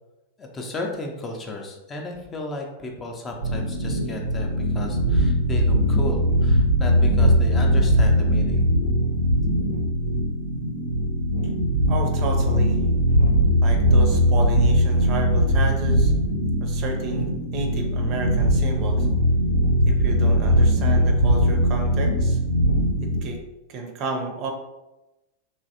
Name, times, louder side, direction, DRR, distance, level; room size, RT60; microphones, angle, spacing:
voice 1, 0.4-8.6, left 2 dB, 20° left, 1 dB, 0.5 m, -34 dB
sound 1, 3.4-23.2, equal, 85° right, 0.6 m, -20 dB
voice 2, 11.9-12.8 13.6-16.1 16.6-19.1 19.8-22.4 23.0-23.4 23.7-24.5, right 3 dB, 40° right, 4 dB, 0.5 m, -31 dB
3.1 x 2.6 x 2.6 m, 0.98 s
figure-of-eight pair, 90°, 0 cm